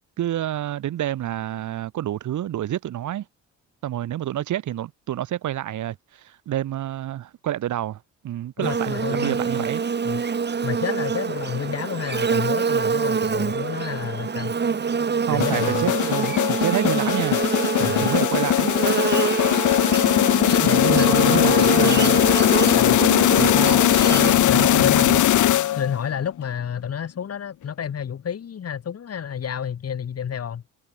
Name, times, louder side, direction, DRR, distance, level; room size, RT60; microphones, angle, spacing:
voice 1, 0.2-3.3 3.8-9.8 15.3-17.4 17.8-18.7 20.6-22.2 23.4-23.8 24.1-25.2, right 12 dB, 75° right, 6.4 m, -28 dB
voice 2, 8.6-9.4 10.0-10.2 10.6-14.6 15.3-15.9 17.8-18.1 20.5-21.6 22.7-23.0 24.4-25.1 25.7-30.6, left 8 dB, 55° left, 4.7 m, -30 dB
Buzz, 8.6-24.3, right 6 dB, 35° right, 2.3 m, -25 dB
sound 1, 15.4-26.1, left 13 dB, 75° left, 3.8 m, -19 dB
cardioid pair, 90°, 30 cm